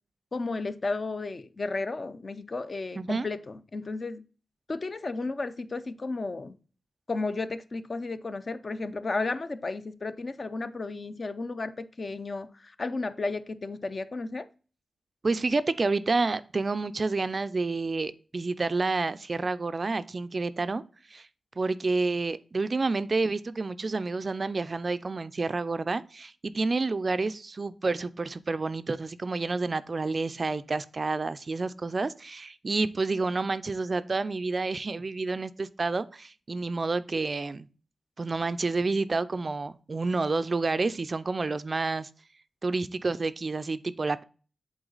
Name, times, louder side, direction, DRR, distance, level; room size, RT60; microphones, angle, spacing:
voice 1, 0.3-4.2 4.7-6.5 7.1-14.5, left 3 dB, 40° left, 0.5 m, -33 dB
voice 2, 3.0-3.3 15.2-20.8 21.1-21.3 21.6-37.7 38.2-42.1 42.6-44.2, right 3 dB, 40° right, 0.3 m, -29 dB
7.9 x 3.9 x 3.9 m
wide cardioid pair, 115°, 0 cm